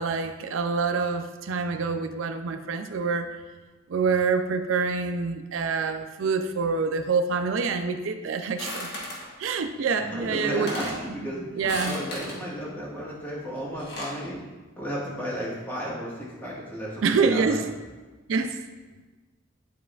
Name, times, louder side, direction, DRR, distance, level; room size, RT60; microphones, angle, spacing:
voice 1, 0.0-3.3 3.9-8.9 9.4-11.3 11.5-12.0 17.0-17.7 18.3-18.6, right 4 dB, 80° right, 7 dB, 0.4 m, -26 dB
sound 1, 8.6-9.3 10.2-10.3 10.5-11.0 11.6-12.4 13.6-14.2, left 1 dB, 55° left, 1.4 m, -35 dB
voice 2, 10.1-10.9 11.1-11.4 11.8-14.4 14.8-17.6, equal, 10° left, -7 dB, 1.6 m, -33 dB
10.0 x 4.7 x 2.4 m, 1.2 s
head